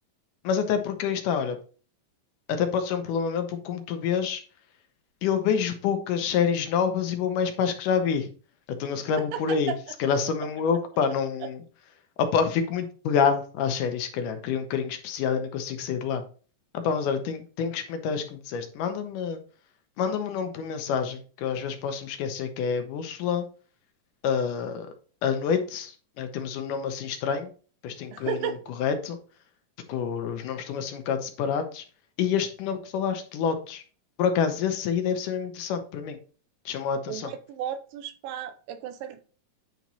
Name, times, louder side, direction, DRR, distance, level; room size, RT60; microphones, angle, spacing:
voice 1, 0.4-1.6 2.5-4.4 5.2-8.3 8.7-11.6 12.2-16.2 16.7-19.4 20.0-23.5 24.2-24.9 25.2-27.5 27.8-29.2 29.9-31.9 32.2-33.8 34.2-36.2 36.7-37.3, left 7 dB, 75° left, 7 dB, 2.2 m, -27 dB
voice 2, 28.1-28.6 37.1-39.2, right 9 dB, 90° right, 9 dB, 2.5 m, -34 dB
9.2 x 4.5 x 4.1 m, 0.39 s
omnidirectional pair, 4.0 m